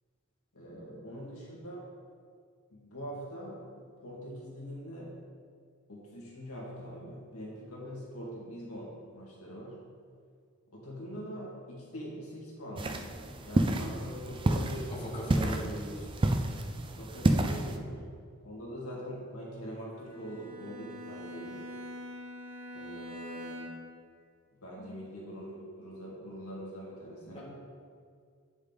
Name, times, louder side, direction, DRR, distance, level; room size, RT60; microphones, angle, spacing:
voice 1, 0.5-1.8 2.7-5.1 5.9-9.8 10.7-13.0 13.5-14.9 15.3-15.6 17.0-18.0 18.4-21.7 22.7-23.7 24.6-27.4, equal, 85° left, -4 dB, 2.1 m, -43 dB
sound 1, 12.8-17.8, right 1 dB, 25° right, 0.4 m, -30 dB
voice 2, 14.9-16.1 24.8-24.9 27.3-27.4, equal, 25° left, -5 dB, 1.6 m, -39 dB
Bowed string instrument, 20.0-24.0, left 1 dB, 90° right, 1.7 m, -44 dB
8.9 x 6.2 x 4.0 m, 2.1 s
head